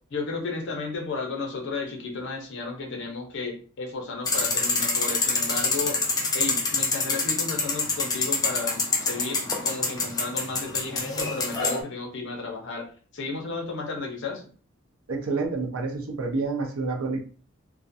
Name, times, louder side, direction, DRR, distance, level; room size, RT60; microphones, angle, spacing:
voice 1, 0.1-6.0 6.3-12.9 13.1-14.4, left 3 dB, 60° left, 1 dB, 0.6 m, -33 dB
sound 1, 4.3-11.8, left 3 dB, 20° left, 0.4 m, -26 dB
voice 2, 15.1-17.2, right 3 dB, 85° right, 2 dB, 0.6 m, -28 dB
2.4 x 2.1 x 2.6 m, 0.41 s
head